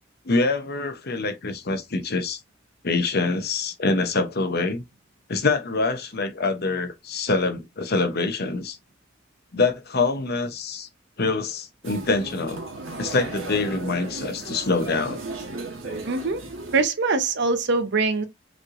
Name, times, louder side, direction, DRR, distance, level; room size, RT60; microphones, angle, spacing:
voice 1, 0.2-2.4 2.8-4.8 5.3-8.8 9.5-10.9 11.2-12.6 13.0-15.2, left 3 dB, 50° left, 0.8 m, -25 dB
sound 1, 11.8-16.8, right 2 dB, 85° right, 1.4 m, -35 dB
voice 2, 16.0-16.4 16.7-18.3, right 3 dB, 60° right, 0.7 m, -23 dB
5.1 x 3.2 x 2.6 m
head